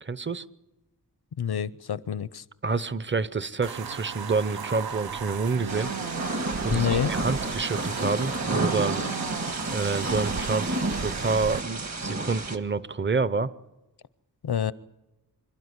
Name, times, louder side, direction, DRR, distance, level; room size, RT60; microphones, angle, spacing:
voice 1, 0.0-0.4 2.6-5.9 6.6-9.1 9.7-13.5, right 4 dB, 30° right, 15 dB, 0.8 m, -28 dB
voice 2, 1.4-2.4 6.7-7.1 14.4-14.7, left 8 dB, 85° left, 17 dB, 0.7 m, -27 dB
sound 1, 3.6-11.6, right 7 dB, 75° right, 0.7 m, -36 dB
Thunder / Rain, 5.7-12.6, right 2 dB, 45° right, 1.8 m, -30 dB
26.5 x 12.5 x 9.7 m, 1.0 s
wide cardioid pair, 90°, 37 cm